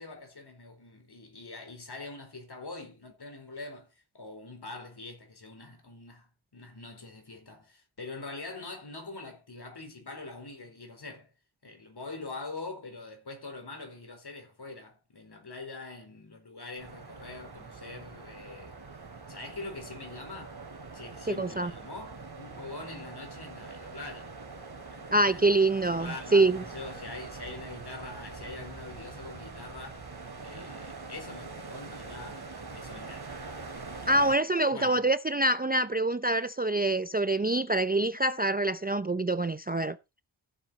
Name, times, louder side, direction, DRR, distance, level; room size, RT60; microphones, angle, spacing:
voice 1, 0.0-11.3 11.6-18.8 19.3-20.6 20.9-24.3 24.9-25.4 25.9-30.0 30.4-33.4 34.7-35.1, left 3 dB, 50° left, 4.4 m, -44 dB
sound 1, 16.8-34.4, right 4 dB, 50° right, 2.8 m, -44 dB
voice 2, 21.3-21.7 25.1-26.6 34.1-40.0, right 2 dB, 20° right, 0.5 m, -25 dB
15.0 x 7.5 x 4.0 m
wide cardioid pair, 110°, 49 cm